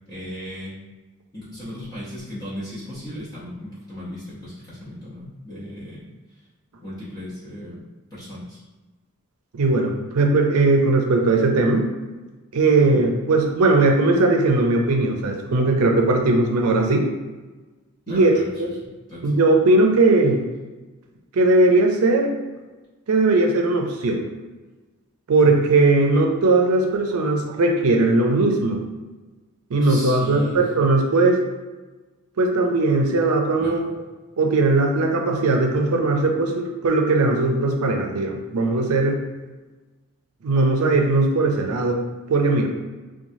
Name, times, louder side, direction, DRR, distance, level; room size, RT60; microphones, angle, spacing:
voice 1, 0.1-0.8 1.3-6.0 6.8-7.8 8.1-8.6 12.9-13.0 18.1-18.5 18.8-19.3 29.7-30.7 33.6-33.8, left 1 dB, 15° left, -10 dB, 0.7 m, -36 dB
voice 2, 9.5-11.9 12.5-17.1 18.1-18.3 18.6-18.7 19.2-20.4 21.3-22.3 23.1-24.2 25.3-28.8 29.7-31.4 32.4-33.8 34.4-39.2 40.4-42.0 42.3-42.7, right 2 dB, 80° right, 2 dB, 0.5 m, -19 dB
3.0 x 2.2 x 2.7 m, 1.2 s
head